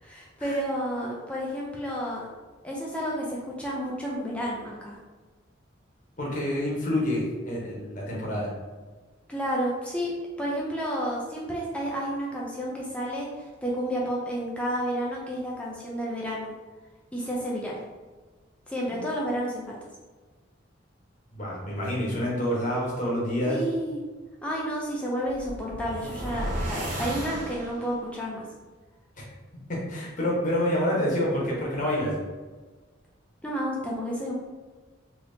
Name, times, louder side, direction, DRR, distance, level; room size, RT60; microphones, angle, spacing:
voice 1, 0.0-2.3 2.6-5.0 9.3-16.5 17.1-17.7 18.7-19.7 23.5-24.0 24.4-28.5 33.4-34.3, equal, 5° left, -4 dB, 0.4 m, -31 dB
voice 2, 6.2-8.5 21.3-23.6 29.2-29.3 29.7-32.1, left 1 dB, 40° left, -4 dB, 0.9 m, -27 dB
sound 1, 25.2-28.1, right 1 dB, 40° right, 0.6 m, -34 dB
3.4 x 2.8 x 2.6 m, 1.3 s
head